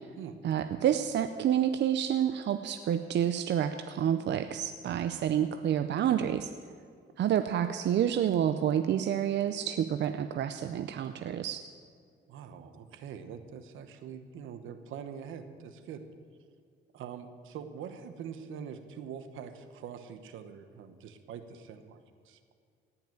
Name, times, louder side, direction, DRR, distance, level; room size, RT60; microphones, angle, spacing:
voice 1, 0.4-6.5 7.2-11.6, right 9 dB, 65° right, 9 dB, 0.6 m, -29 dB
voice 2, 12.3-16.0 16.9-22.0 22.2-22.4, right 7 dB, 85° right, 9 dB, 1.1 m, -44 dB
17.5 x 5.9 x 9.2 m, 2.2 s
cardioid pair, 90°, 20 cm